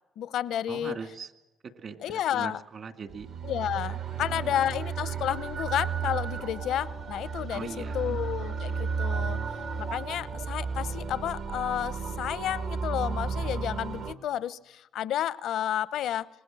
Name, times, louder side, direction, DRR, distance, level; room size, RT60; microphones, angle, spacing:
voice 1, 0.2-1.0 2.0-2.6 3.4-7.7 7.9-9.4 9.8-16.3, left 11 dB, 80° left, 0.7 m, -31 dB
voice 2, 0.7-1.3 1.6-3.3 4.1-4.7 7.5-8.2, right 5 dB, 55° right, 2.3 m, -41 dB
sound 1, 3.1-14.1, right 5 dB, 75° right, 1.7 m, -33 dB
26.0 x 20.0 x 7.6 m
cardioid pair, 90°, 0 cm